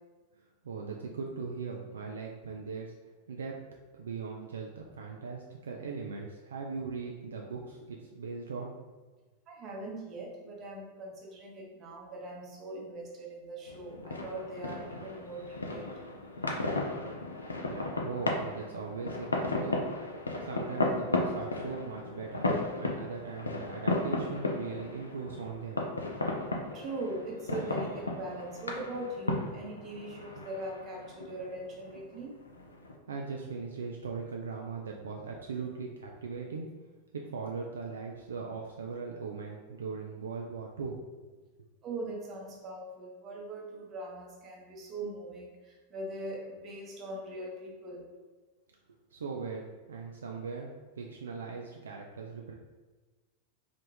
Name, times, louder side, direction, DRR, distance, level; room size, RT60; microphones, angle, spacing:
voice 1, 0.6-2.9 3.3-3.6 3.9-8.7 17.6-19.8 20.4-22.5 22.8-25.8 33.1-36.7 37.1-41.0 49.1-52.5, right 5 dB, 70° right, 0 dB, 0.3 m, -39 dB
voice 2, 9.5-16.0 26.7-32.4 41.8-48.1, right 2 dB, 30° right, -2 dB, 0.9 m, -41 dB
sound 1, 13.7-32.9, left 2 dB, 75° left, 0.4 m, -35 dB
3.2 x 2.4 x 3.3 m, 1.3 s
figure-of-eight pair, 90°, 0 cm